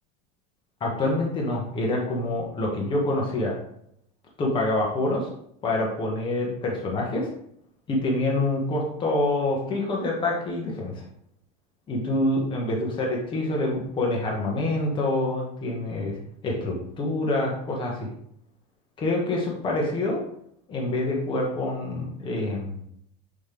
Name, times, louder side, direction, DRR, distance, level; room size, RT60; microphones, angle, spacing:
voice 1, 0.8-3.5 4.4-5.3 5.6-7.3 7.9-11.0 11.9-16.1 16.4-18.1 19.0-20.2 20.7-22.8, left 2 dB, 25° left, -2 dB, 1.6 m, -26 dB
5.9 x 5.1 x 3.5 m, 0.69 s
supercardioid pair, 150°, 21 cm